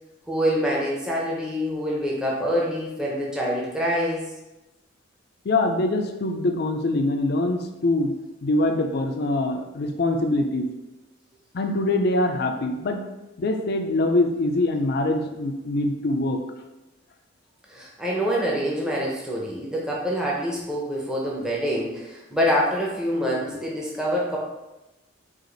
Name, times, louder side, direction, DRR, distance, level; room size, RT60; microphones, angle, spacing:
voice 1, 0.3-4.3 17.7-24.4, equal, 5° right, -4 dB, 0.6 m, -26 dB
voice 2, 5.4-8.1 8.4-10.7 11.5-13.0 13.4-16.4, left 2 dB, 55° left, 5 dB, 0.4 m, -23 dB
4.8 x 2.5 x 3.9 m, 1.0 s
head